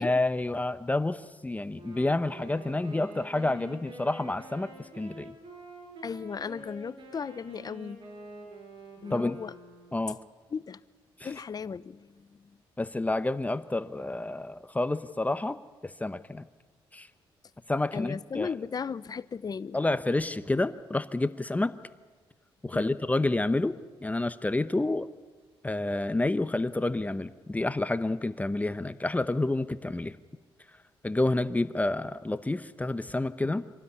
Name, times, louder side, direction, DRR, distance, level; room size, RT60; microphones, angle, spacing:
voice 1, 0.0-4.7 5.0-5.3 9.1-9.4 9.9-10.2 11.2-11.3 12.8-15.6 15.8-16.4 16.9-17.1 17.7-18.5 19.7-21.7 22.6-23.7 24.0-25.1 25.6-30.1 31.0-33.6, left 2 dB, 15° left, 0.9 m, -29 dB
Wind instrument woodwind instrument, 1.7-10.1, right 1 dB, 60° right, 6.0 m, -47 dB
voice 2, 6.0-8.0 9.0-9.5 10.5-10.8 11.2-12.5 17.9-19.8 22.7-22.9, left 6 dB, 40° left, 0.8 m, -36 dB
26.0 x 12.5 x 9.7 m
cardioid pair, 75°, 10 cm